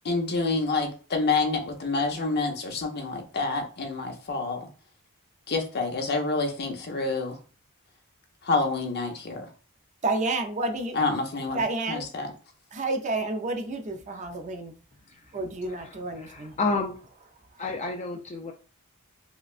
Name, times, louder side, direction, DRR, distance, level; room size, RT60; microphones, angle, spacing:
voice 1, 0.0-4.6 5.5-7.4 8.4-9.5 10.9-11.6 11.9-12.3, left 3 dB, 50° left, 0.8 m, -27 dB
voice 2, 10.0-11.0 11.5-12.1 12.7-14.7 15.3-16.6 17.5-17.6, right 2 dB, 35° right, 0.5 m, -30 dB
voice 3, 16.2-17.0 17.6-18.5, left 3 dB, 30° left, 0.4 m, -30 dB
4.9 x 2.2 x 2.4 m
head